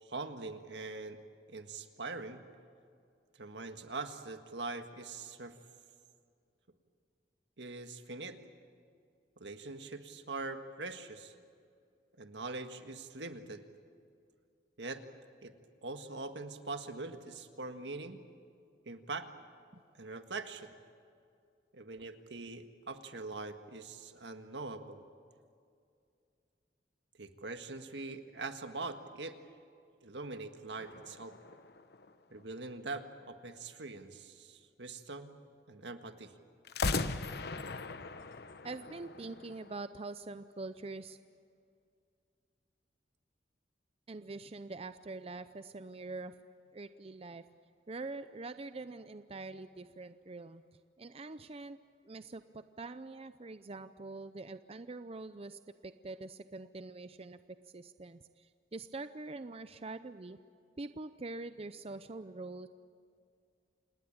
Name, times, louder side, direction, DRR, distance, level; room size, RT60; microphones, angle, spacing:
voice 1, 0.0-1.2 1.5-2.4 3.3-5.6 7.6-8.4 9.4-11.3 12.2-13.6 14.8-15.0 15.4-15.5 15.8-18.2 18.9-19.3 20.0-20.7 21.7-25.0 27.2-29.4 30.0-31.4 32.3-35.3 35.7-36.3, right 3 dB, 80° right, 7 dB, 1.7 m, -43 dB
sound 1, 30.8-32.6 36.6-39.8, left 3 dB, 65° left, 1.0 m, -38 dB
voice 2, 38.6-41.2 44.1-46.3 46.7-47.4 47.9-50.6 51.0-51.8 52.0-57.4 57.7-60.4 60.8-62.7, right 3 dB, 35° right, 11 dB, 0.6 m, -44 dB
28.0 x 19.5 x 8.7 m, 2.4 s
head